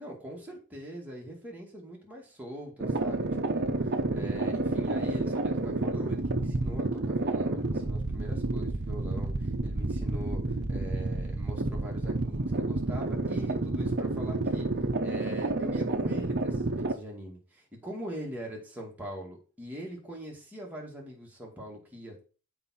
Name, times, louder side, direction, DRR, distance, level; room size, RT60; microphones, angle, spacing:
voice 1, 0.0-10.4 10.7-14.7 15.0-22.2, equal, 10° right, -2 dB, 2.2 m, -42 dB
sound 1, 2.8-16.9, right 2 dB, 50° right, 0.8 m, -30 dB
7.4 x 4.8 x 4.3 m, 0.36 s
head